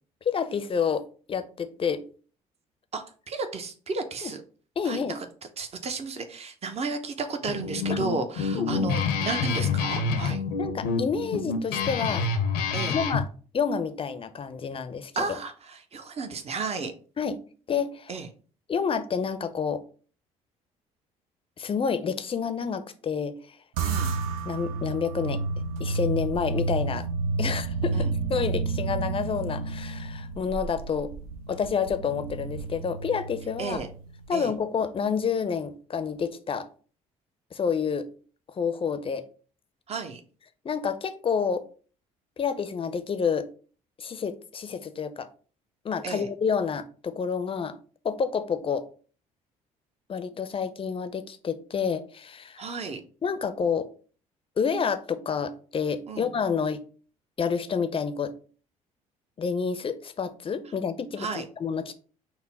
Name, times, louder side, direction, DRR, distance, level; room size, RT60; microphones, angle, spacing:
voice 1, 0.3-2.0 4.2-4.3 4.8-5.2 7.9-8.0 8.5-8.9 10.2-12.2 12.9-13.3 13.5-15.4 17.2-17.4 17.7-18.1 18.7-19.8 21.6-23.4 24.5-25.4 25.8-27.1 27.4-31.1 31.5-33.8 34.3-36.7 37.5-38.1 38.5-39.2 40.6-41.6 42.4-43.5 44.0-45.3 45.8-47.8 48.0-48.8 50.1-52.7 53.2-53.9 54.6-56.8 57.4-58.3 59.4-61.9, left 6 dB, 30° left, 10 dB, 0.6 m, -29 dB
voice 2, 2.9-4.4 4.8-5.2 5.6-10.4 12.7-13.0 15.1-16.9 18.1-18.3 23.8-24.1 27.9-28.1 33.6-33.9 34.3-34.5 39.9-40.2 46.0-46.3 52.6-53.0 56.1-56.3 61.2-61.4, right 4 dB, 35° right, 7 dB, 0.8 m, -33 dB
Guitar, 7.5-13.2, left 5 dB, 65° left, 0.7 m, -27 dB
sound 1, 23.8-34.4, right 3 dB, 75° right, 0.5 m, -31 dB
5.5 x 2.1 x 4.0 m, 0.40 s
hypercardioid pair, 55°, 18 cm